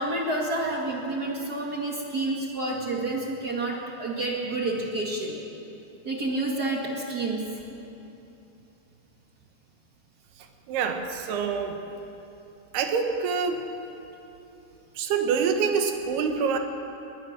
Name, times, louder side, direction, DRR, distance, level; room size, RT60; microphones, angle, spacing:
voice 1, 0.0-5.3 6.0-7.4, right 2 dB, 35° right, -1 dB, 1.7 m, -29 dB
voice 2, 10.7-11.8 12.7-13.6 15.0-16.6, right 6 dB, 85° right, 5 dB, 3.5 m, -26 dB
21.0 x 19.5 x 6.6 m, 3.0 s
omnidirectional pair, 4.5 m